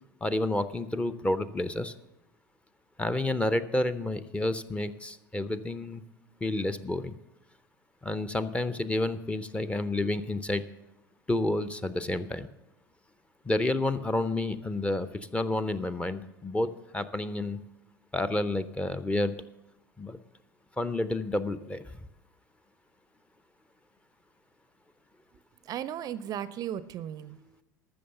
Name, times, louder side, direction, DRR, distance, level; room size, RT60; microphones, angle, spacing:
voice 1, 0.2-1.9 3.0-6.0 6.4-7.2 8.0-10.6 11.3-12.5 13.4-17.6 18.1-19.3 20.0-20.2 20.8-21.8, left 2 dB, 10° left, 14 dB, 0.6 m, -30 dB
voice 2, 25.6-27.6, right 10 dB, 35° right, 16 dB, 0.5 m, -36 dB
14.0 x 6.4 x 6.8 m, 0.93 s
figure-of-eight pair, 75°, 11 cm